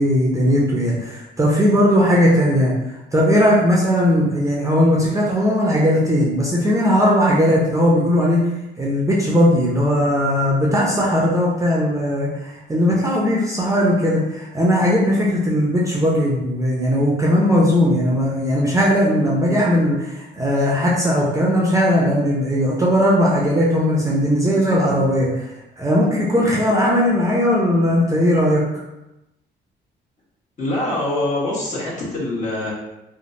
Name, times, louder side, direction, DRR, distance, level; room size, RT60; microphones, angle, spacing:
voice 1, 0.0-2.7 3.1-8.4 8.8-25.4 25.8-28.6, equal, 15° right, -5 dB, 0.6 m, -18 dB
voice 2, 30.6-32.7, left 1 dB, 40° left, -7 dB, 1.4 m, -24 dB
3.2 x 2.1 x 2.6 m, 0.95 s
cardioid pair, 90°, 20 cm